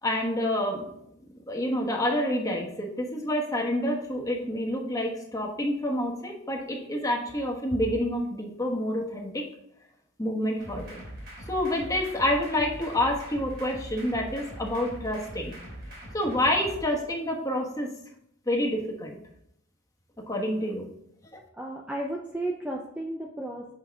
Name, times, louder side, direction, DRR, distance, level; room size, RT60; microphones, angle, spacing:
voice 1, 0.0-0.8 1.5-9.4 10.2-11.0 11.5-15.5 16.1-17.9 18.5-19.2 20.3-20.9 21.3-21.4, left 1 dB, 15° left, 0 dB, 1.2 m, -28 dB
sound 1, 10.6-16.8, right 1 dB, 50° right, 2.7 m, -42 dB
voice 2, 21.5-23.7, right 1 dB, 5° right, -1 dB, 0.5 m, -33 dB
8.0 x 5.3 x 3.5 m, 0.74 s
head